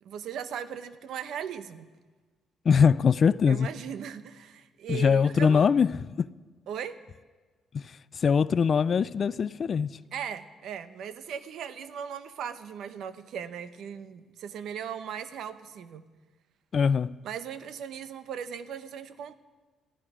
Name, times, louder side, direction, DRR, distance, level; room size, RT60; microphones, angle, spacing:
voice 1, 0.0-1.9 3.5-5.7 6.7-7.0 10.1-16.0 17.2-19.3, right 8 dB, 75° right, 0.9 m, -38 dB
voice 2, 2.7-3.7 4.9-5.9 6.2-6.3 7.7-7.8 8.2-9.9 16.7-17.1, left 6 dB, 50° left, 0.4 m, -22 dB
19.5 x 14.0 x 5.0 m
cardioid pair, 90°, 0 cm